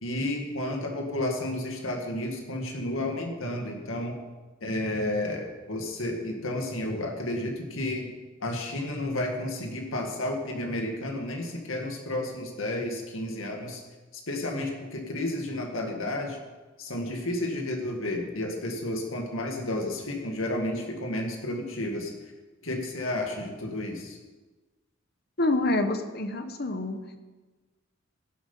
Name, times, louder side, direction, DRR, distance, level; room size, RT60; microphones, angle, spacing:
voice 1, 0.0-4.2 4.6-8.1 8.4-13.8 14.1-16.4 16.8-22.1 22.6-24.2, left 1 dB, 85° left, 2 dB, 1.9 m, -31 dB
voice 2, 25.4-27.2, left 2 dB, 50° left, 8 dB, 1.1 m, -27 dB
17.0 x 7.9 x 5.6 m, 1.2 s
head